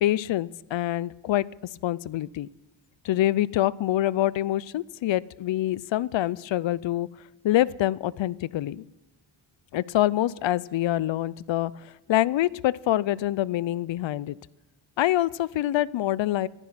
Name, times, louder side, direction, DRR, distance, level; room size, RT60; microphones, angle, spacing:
voice 1, 0.0-1.4 1.8-2.5 3.0-7.1 7.4-8.8 9.7-11.7 12.1-14.4 15.0-16.5, left 14 dB, 75° left, 21 dB, 0.5 m, -25 dB
14.5 x 11.5 x 5.9 m, 1.0 s
cardioid pair, 70°, 46 cm